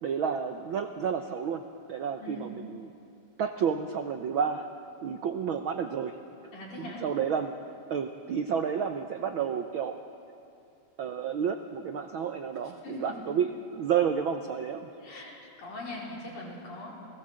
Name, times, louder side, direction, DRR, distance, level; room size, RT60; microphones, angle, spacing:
voice 1, 0.0-1.6 1.9-2.9 3.4-4.7 5.0-6.2 6.8-7.5 7.9-10.0 11.0-15.2, right 7 dB, 75° right, 6 dB, 1.2 m, -30 dB
voice 2, 6.5-7.0 12.6-13.1 15.0-16.9, left 2 dB, 80° left, -4 dB, 6.4 m, -41 dB
29.5 x 18.5 x 7.6 m, 2.5 s
omnidirectional pair, 3.3 m